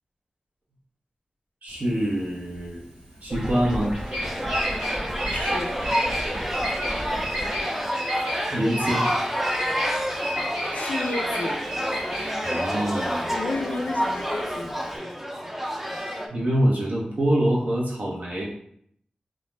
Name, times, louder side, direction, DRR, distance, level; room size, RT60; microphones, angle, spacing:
voice 1, 1.6-2.8 3.2-3.9 8.5-9.0 12.4-13.3 16.3-18.4, right 1 dB, 70° right, -4 dB, 0.8 m, -25 dB
Bird vocalization bird call bird song, 1.7-15.0, equal, 50° right, 1.2 m, -33 dB
sound 1, 3.3-7.7, equal, 25° right, 0.9 m, -34 dB
sound 2, 4.2-16.3, equal, 10° right, 0.4 m, -29 dB
voice 2, 5.3-5.7 10.7-11.6 13.3-14.8, left 3 dB, 80° left, 3 dB, 0.4 m, -31 dB
2.4 x 2.0 x 3.2 m, 0.66 s
cardioid pair, 45°, 3 cm